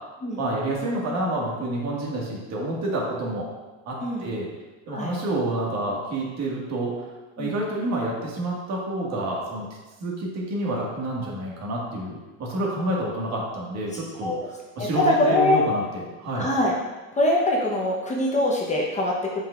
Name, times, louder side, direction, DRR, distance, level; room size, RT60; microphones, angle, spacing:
voice 1, 0.4-3.5 3.8-4.5 4.9-6.9 7.4-9.7 10.0-14.3 14.8-16.5, right 1 dB, 45° right, -3 dB, 1.8 m, -28 dB
voice 2, 13.9-14.4 14.8-15.6 16.3-16.7 17.1-19.4, left 1 dB, 20° left, -3 dB, 0.9 m, -23 dB
7.1 x 5.5 x 2.5 m, 1.2 s
supercardioid pair, 125°, 37 cm